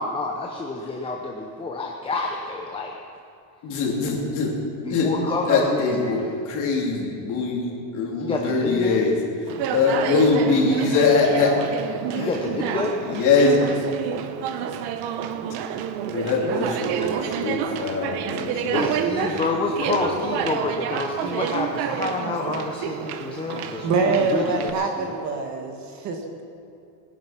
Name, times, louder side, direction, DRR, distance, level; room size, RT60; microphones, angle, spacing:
voice 1, 0.0-3.0 4.8-6.3 8.2-9.0 12.2-13.0 14.6-14.7 18.7-25.1, left 3 dB, 10° left, 0 dB, 0.7 m, -28 dB
voice 2, 3.6-4.5 4.9-5.1 5.4-6.2 6.4-11.5 12.1-12.4 13.0-13.6 16.1-19.4 19.7-20.4, left 4 dB, 40° left, -2 dB, 3.2 m, -23 dB
Conversation, 9.5-24.7, right 9 dB, 55° right, 1.0 m, -29 dB
voice 3, 23.8-26.4, right 4 dB, 40° right, 3 dB, 1.7 m, -24 dB
20.5 x 10.5 x 5.9 m, 2.6 s
cardioid pair, 175°, 45 cm